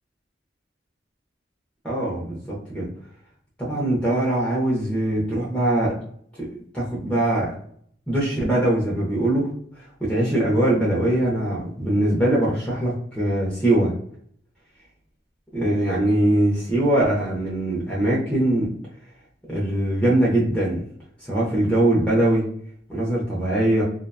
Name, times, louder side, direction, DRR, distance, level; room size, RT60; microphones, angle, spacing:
voice 1, 1.8-2.9 3.6-6.0 6.4-7.5 8.1-9.5 9.8-13.9 15.5-18.7 19.5-20.8 21.2-22.5 22.9-23.8, right 1 dB, 5° left, -6 dB, 0.7 m, -22 dB
2.8 x 2.2 x 2.2 m, 0.62 s
head